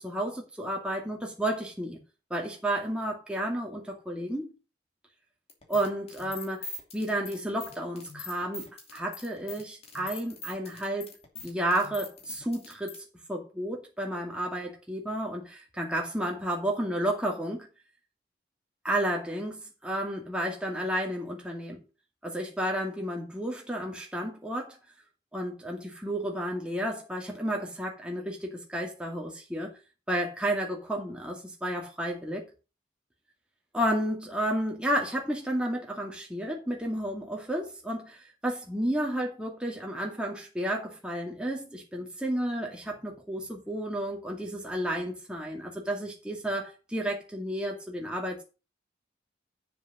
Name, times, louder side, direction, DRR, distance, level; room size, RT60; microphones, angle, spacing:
voice 1, 0.0-2.0 2.3-4.5 5.7-6.7 6.9-11.1 11.4-13.0 13.3-17.7 18.8-21.8 22.2-24.8 25.3-29.7 30.1-32.4 33.7-48.4, right 1 dB, 5° right, 2.2 m, -32 dB
sound 1, 5.5-13.0, left 3 dB, 35° left, 2.6 m, -42 dB
7.8 x 7.0 x 6.1 m
head